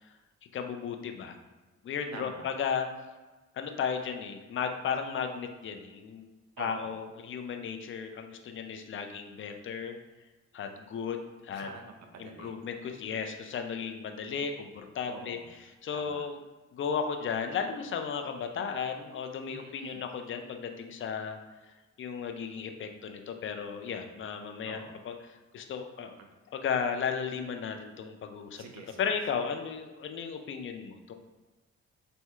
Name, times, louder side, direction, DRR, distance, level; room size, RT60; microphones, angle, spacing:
voice 1, 0.5-1.4 1.8-2.9 3.5-6.3 6.6-10.0 10.5-11.7 12.2-15.4 15.8-16.4 16.7-21.4 21.6-21.7 22.0-25.1 25.5-26.1 26.5-28.6 29.0-31.1, left 6 dB, 45° left, 5 dB, 0.4 m, -35 dB
voice 2, 2.1-2.5 6.6-7.0 11.5-12.5 15.1-15.6 15.9-16.3 19.5-20.0 24.6-25.0 26.2-26.3 28.5-29.1, right 4 dB, 60° right, 3 dB, 0.6 m, -47 dB
4.2 x 2.7 x 2.3 m, 1.2 s
cardioid pair, 90°, 30 cm